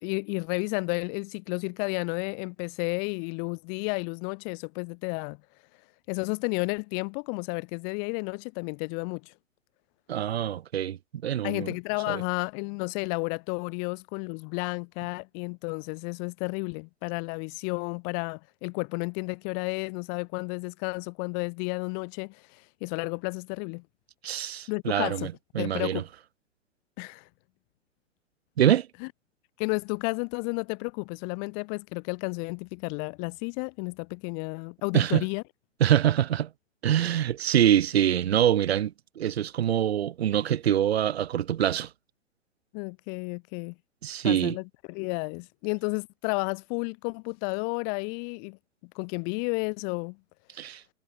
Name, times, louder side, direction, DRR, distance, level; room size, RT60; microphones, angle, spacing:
voice 1, 0.0-5.4 6.1-9.3 11.4-23.8 24.7-25.3 25.6-26.0 27.0-27.3 29.0-29.1 29.6-35.4 42.7-43.7 44.2-48.6 48.9-50.2, left 40 dB or more, 25° left, 0.8 m, -32 dB
voice 2, 10.1-11.7 12.1-12.2 24.2-26.0 28.6-28.9 34.9-35.2 35.8-36.5 36.8-41.9 44.0-44.6 50.6-50.8, right 10 dB, 55° right, 1.4 m, -25 dB
figure-of-eight pair, 120°, 38 cm